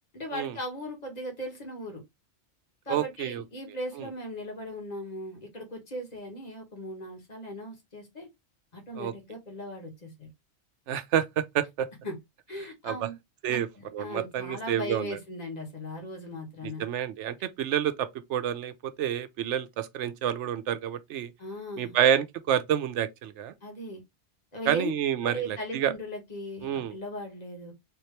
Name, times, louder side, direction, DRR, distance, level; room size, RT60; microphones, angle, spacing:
voice 1, 0.1-2.0 2.8-8.3 8.7-10.3 12.0-12.2 12.5-13.1 13.5-16.8 21.4-22.0 23.6-24.0 24.5-24.9 25.2-27.7, equal, 35° left, 1.5 m, -38 dB
voice 2, 2.9-3.4 4.0-4.1 9.0-9.1 10.9-11.9 12.8-13.1 13.4-13.7 13.9-15.1 16.6-21.3 21.8-23.5 24.7-25.9 26.6-26.9, right 10 dB, 85° right, 0.9 m, -28 dB
3.7 x 2.9 x 3.1 m
omnidirectional pair, 1.2 m